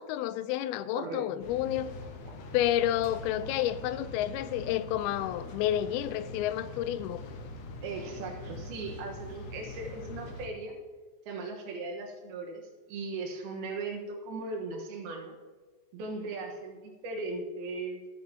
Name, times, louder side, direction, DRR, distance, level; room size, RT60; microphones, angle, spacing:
voice 1, 0.0-1.9 2.5-7.2, left 12 dB, 85° left, 2.5 m, -30 dB
voice 2, 0.9-1.2 7.8-10.8 11.3-12.6 12.9-15.4 15.9-18.0, right 3 dB, 85° right, 3.3 m, -38 dB
sound 1, 1.4-10.5, left 2 dB, 70° left, 1.6 m, -43 dB
sound 2, 1.8-5.7, right 2 dB, 55° right, 3.3 m, -56 dB
16.5 x 9.1 x 2.9 m
omnidirectional pair, 4.3 m